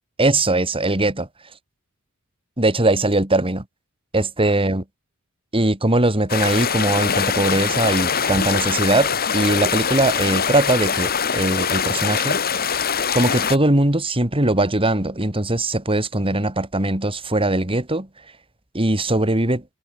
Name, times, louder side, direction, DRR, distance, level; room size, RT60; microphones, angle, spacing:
voice 1, 0.2-1.3 2.6-3.6 4.1-4.8 5.5-12.4 13.1-18.1 18.7-19.6, right 2 dB, 25° right, 3.0 m, -20 dB
sound 1, 6.3-13.6, left 7 dB, 45° left, 2.4 m, -23 dB
head